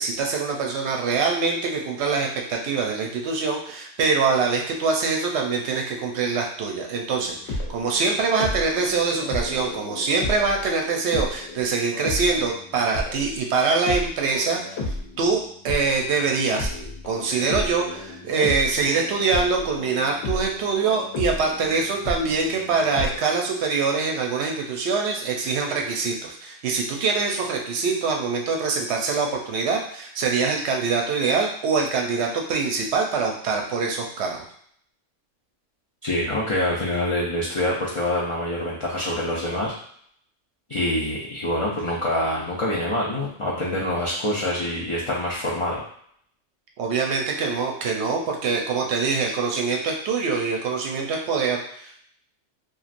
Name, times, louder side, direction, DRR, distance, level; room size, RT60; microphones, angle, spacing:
voice 1, 0.0-14.8 15.2-16.7 17.1-34.4 46.8-52.0, right 4 dB, 70° right, 1 dB, 0.8 m, -24 dB
sound 1, 7.1-10.7 11.1-16.1 16.5-23.2, left 2 dB, 70° left, 1.0 m, -33 dB
voice 2, 36.0-39.7 40.7-45.8, left 1 dB, 50° left, -6 dB, 0.3 m, -25 dB
3.0 x 2.5 x 2.4 m, 0.64 s
omnidirectional pair, 1.3 m